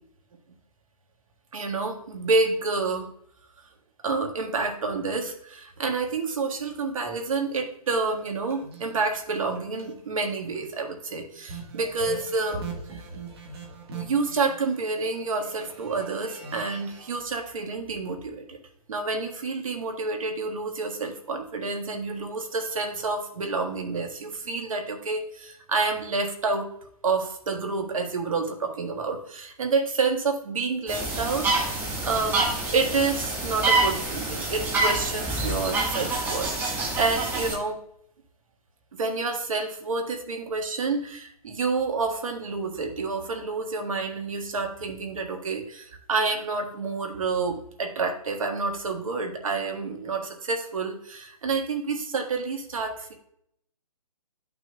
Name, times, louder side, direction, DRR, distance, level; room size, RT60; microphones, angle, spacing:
voice 1, 1.5-3.1 4.0-13.0 13.9-18.6 18.9-26.7 27.0-32.5 32.7-37.8 39.0-53.1, right 4 dB, 65° right, 3 dB, 1.6 m, -29 dB
sound 1, 8.1-10.0 10.3-10.7 11.1-17.2, right 4 dB, 45° right, 1.5 m, -42 dB
sound 2, 30.9-37.5, right 2 dB, 10° right, 1.6 m, -27 dB
11.0 x 6.0 x 2.3 m, 0.68 s
hypercardioid pair, 150°, 19 cm